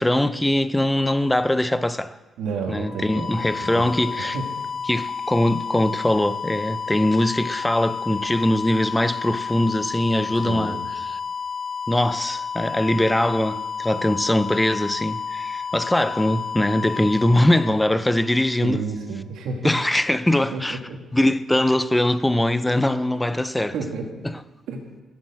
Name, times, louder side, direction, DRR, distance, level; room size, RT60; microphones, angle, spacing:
voice 1, 0.0-2.2 2.7-4.4 4.9-10.8 11.1-11.2 11.9-18.8 19.6-20.8 21.1-23.7 24.2-24.4, left 1 dB, 5° left, 0.4 m, -21 dB
voice 2, 2.4-3.4 3.6-3.9 4.2-4.4 10.3-10.8 18.6-19.6 20.5-21.0 23.7-24.0 24.7-24.8, right 5 dB, 85° right, 2.4 m, -30 dB
sound 1, 2.7-18.5, left 6 dB, 70° left, 1.4 m, -31 dB
15.5 x 7.4 x 7.6 m
cardioid pair, 165°, 0 cm